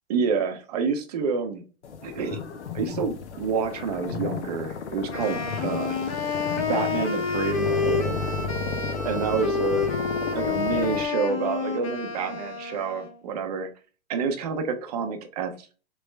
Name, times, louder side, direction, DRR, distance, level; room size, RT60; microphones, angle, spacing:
voice 1, 0.1-1.6 2.0-2.4 2.7-6.0 6.7-8.3 9.0-9.9 10.3-13.7 14.1-15.7, right 5 dB, 35° right, 6 dB, 0.7 m, -28 dB
sound 1, 1.8-11.1, left 6 dB, 80° left, 0.9 m, -33 dB
Wind instrument woodwind instrument, 5.1-13.2, left 4 dB, 30° left, 0.7 m, -29 dB
3.4 x 3.3 x 3.1 m, 0.36 s
hypercardioid pair, 165°, 34 cm